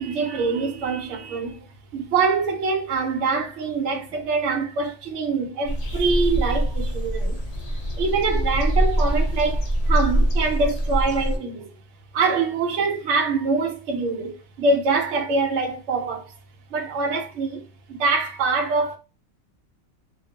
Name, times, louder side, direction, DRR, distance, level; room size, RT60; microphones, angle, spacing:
voice 1, 0.0-1.6 1.9-7.4 8.0-11.8 12.1-16.3 16.7-17.6 17.9-19.0, right 4 dB, 65° right, 0.8 m, -24 dB
sound 1, 5.6-11.4, right 1 dB, 40° left, 0.6 m, -23 dB
2.3 x 2.3 x 2.7 m
omnidirectional pair, 1.4 m